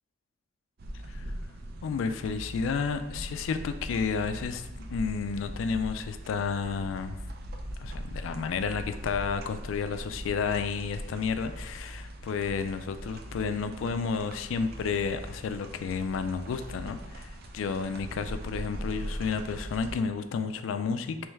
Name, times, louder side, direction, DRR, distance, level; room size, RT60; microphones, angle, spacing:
sound 1, 0.8-20.0, equal, 50° right, 0.4 m, -41 dB
voice 1, 1.8-7.2 7.8-21.3, left 5 dB, 80° left, 9 dB, 0.3 m, -31 dB
3.4 x 3.1 x 3.1 m, 1.0 s
head